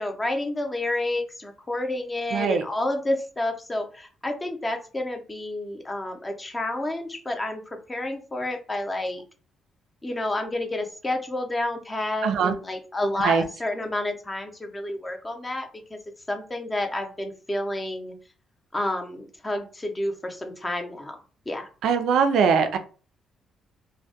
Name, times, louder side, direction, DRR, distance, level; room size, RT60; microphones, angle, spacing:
voice 1, 0.0-9.2 10.0-16.0 16.3-18.1 18.7-21.2 21.5-21.7, left 1 dB, 20° left, 4 dB, 0.5 m, -30 dB
voice 2, 2.3-2.6 12.2-12.5 13.2-13.4 21.8-22.8, right 6 dB, 80° right, 7 dB, 0.3 m, -21 dB
2.2 x 2.1 x 2.7 m, 0.38 s
cardioid pair, 90°, 0 cm